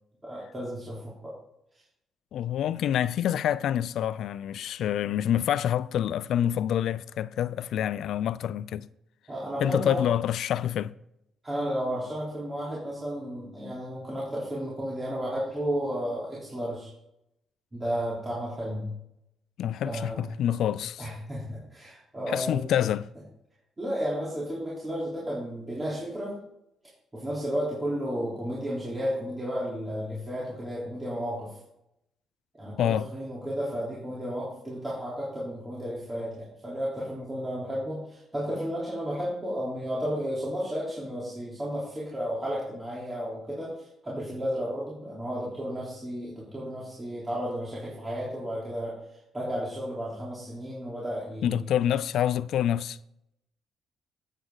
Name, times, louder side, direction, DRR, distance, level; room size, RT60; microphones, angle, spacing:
voice 1, 0.2-1.3 2.8-2.9 9.3-10.1 11.4-16.9 17.7-18.9 19.8-20.2 21.0-22.6 23.8-26.4 27.1-31.5 32.6-49.0 49.3-51.6, equal, 20° right, 3.4 m, -33 dB
voice 2, 2.3-8.9 9.6-10.9 19.6-21.1 22.3-23.1 32.8-33.1 51.4-53.0, left 10 dB, 75° left, 0.3 m, -27 dB
8.8 x 8.1 x 3.9 m
cardioid pair, 90°, 0 cm